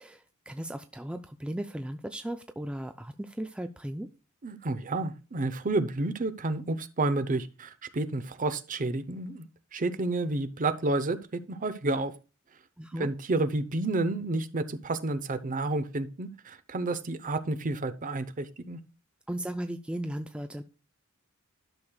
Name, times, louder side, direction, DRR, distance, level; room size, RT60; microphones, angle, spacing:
voice 1, 0.0-4.1 12.8-13.1 19.3-20.6, right 1 dB, 5° right, 8 dB, 0.3 m, -36 dB
voice 2, 4.4-9.5 9.7-12.1 13.0-18.8, right 2 dB, 40° right, 13 dB, 0.7 m, -30 dB
12.0 x 6.4 x 2.3 m, 0.32 s
head